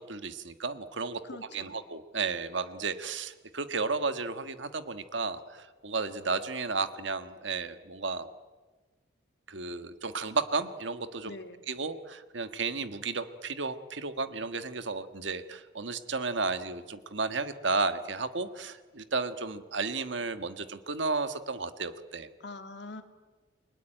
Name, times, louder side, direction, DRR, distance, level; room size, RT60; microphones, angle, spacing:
voice 1, 0.0-1.2 1.5-8.3 9.5-11.3 11.7-22.3, right 4 dB, 65° right, 11 dB, 1.5 m, -33 dB
voice 2, 1.2-1.7 11.2-11.6 22.4-23.0, left 2 dB, 60° left, 7 dB, 2.3 m, -43 dB
29.5 x 22.5 x 9.0 m, 1.3 s
head